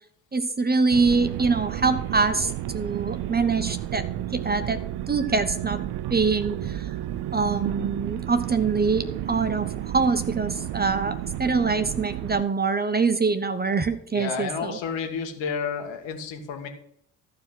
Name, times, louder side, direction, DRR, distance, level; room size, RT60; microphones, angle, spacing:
voice 1, 0.3-4.0 4.3-5.8 6.1-6.9 7.3-14.8, right 4 dB, 20° right, 10 dB, 1.0 m, -24 dB
sound 1, 0.9-12.4, right 12 dB, 50° right, 0.7 m, -32 dB
voice 2, 14.1-16.7, left 6 dB, 60° left, 5 dB, 1.9 m, -31 dB
14.0 x 4.8 x 6.0 m, 0.69 s
figure-of-eight pair, 50°, 49 cm